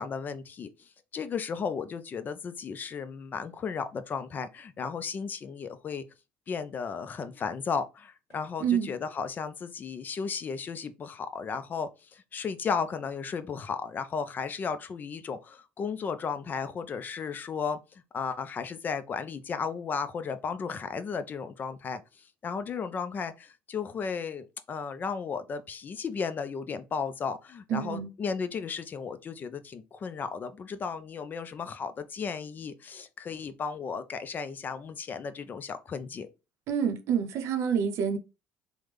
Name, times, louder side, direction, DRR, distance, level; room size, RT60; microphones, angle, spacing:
voice 1, 0.0-6.0 6.5-36.3, left 6 dB, 35° left, 0.4 m, -34 dB
voice 2, 8.6-8.9 27.7-28.1 36.7-38.2, right 7 dB, 65° right, 0.6 m, -27 dB
3.4 x 2.1 x 3.3 m
supercardioid pair, 100°, 5 cm